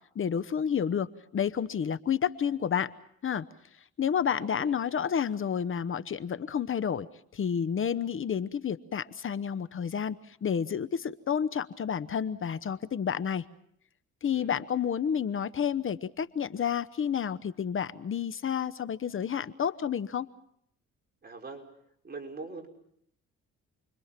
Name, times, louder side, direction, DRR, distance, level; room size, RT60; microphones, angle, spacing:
voice 1, 0.1-2.9 3.2-3.4 4.0-7.1 7.3-13.4 14.2-20.3, left 8 dB, 45° left, 14 dB, 1.0 m, -30 dB
voice 2, 4.4-4.7 14.3-14.6 21.2-21.6 22.0-22.7, right 3 dB, 30° right, 1 dB, 5.6 m, -42 dB
29.0 x 23.0 x 5.9 m, 0.70 s
cardioid pair, 90°, 30 cm